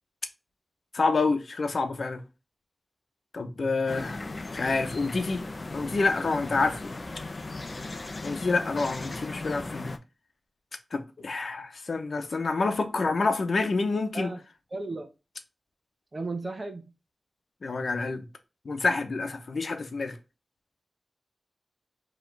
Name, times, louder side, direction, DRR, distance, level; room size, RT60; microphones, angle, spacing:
voice 1, 0.9-2.2 3.3-4.2 4.5-5.4 5.7-6.8 8.2-10.0 10.9-14.3 17.6-18.2 18.6-20.2, left 3 dB, 70° left, 0.8 m, -28 dB
sound 1, 3.9-10.0, left 2 dB, 40° left, 0.5 m, -37 dB
voice 2, 14.7-15.1 16.1-16.8, right 3 dB, 40° right, 1.0 m, -34 dB
4.9 x 3.2 x 3.2 m
wide cardioid pair, 95°, 0 cm